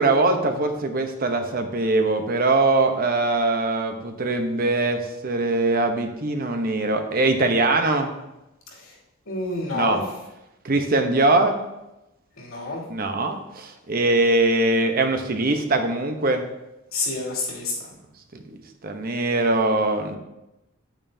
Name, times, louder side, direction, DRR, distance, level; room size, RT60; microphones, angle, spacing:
voice 1, 0.0-8.1 9.7-10.0 10.6-11.6 12.9-16.4 18.3-20.2, right 2 dB, 45° right, 6 dB, 0.8 m, -22 dB
voice 2, 9.3-10.0 12.4-12.8 16.9-17.7, left 2 dB, 85° left, -4 dB, 2.7 m, -28 dB
9.1 x 8.9 x 2.7 m, 0.94 s
head